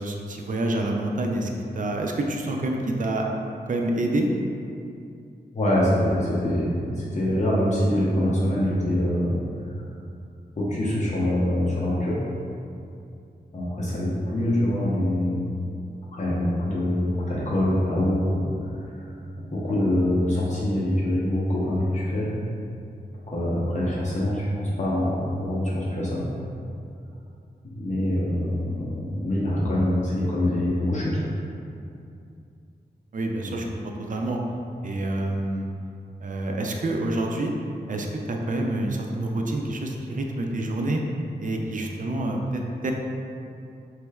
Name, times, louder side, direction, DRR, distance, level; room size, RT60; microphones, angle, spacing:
voice 1, 0.0-1.5 1.7-3.2 3.7-4.3 33.1-33.7 34.1-34.4 34.8-35.7 36.2-37.5 37.9-41.0 41.4-42.9, right 1 dB, 50° right, 1 dB, 0.4 m, -27 dB
voice 2, 5.5-9.4 10.6-12.2 13.5-15.5 16.1-18.5 18.8-19.2 19.5-22.3 23.3-26.2 27.7-31.2, left 1 dB, 45° left, -7 dB, 0.9 m, -24 dB
3.2 x 3.0 x 2.3 m, 2.5 s
wide cardioid pair, 70°, 17 cm